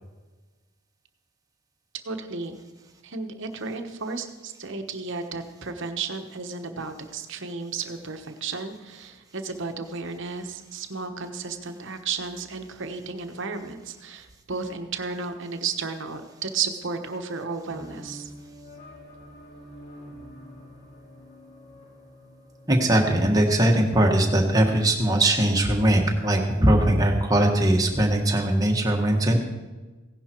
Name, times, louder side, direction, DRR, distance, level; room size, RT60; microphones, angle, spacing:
voice 1, 2.0-2.6 3.0-18.3, right 4 dB, 55° right, 7 dB, 1.1 m, -33 dB
sound 1, 17.7-25.0, equal, 45° left, 4.3 m, -47 dB
voice 2, 22.7-29.4, right 1 dB, 15° right, 1 dB, 1.5 m, -20 dB
16.5 x 11.0 x 4.5 m, 1.3 s
head